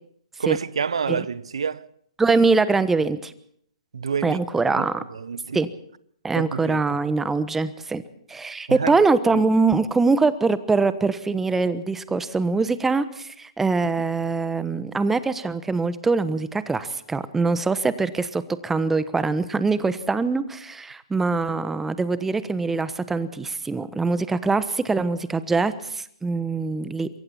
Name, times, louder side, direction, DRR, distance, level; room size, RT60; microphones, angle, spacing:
voice 1, 0.4-1.9 3.9-4.4 5.1-5.6 6.3-6.8 8.7-8.9 9.3-9.4 21.5-21.6, right 6 dB, 70° right, 0.8 m, -28 dB
voice 2, 2.2-3.3 4.2-5.0 5.5-5.7 6.2-8.0 8.3-27.1, right 4 dB, 10° right, 1.2 m, -23 dB
27.0 x 23.0 x 4.4 m
figure-of-eight pair, 120°, 3 cm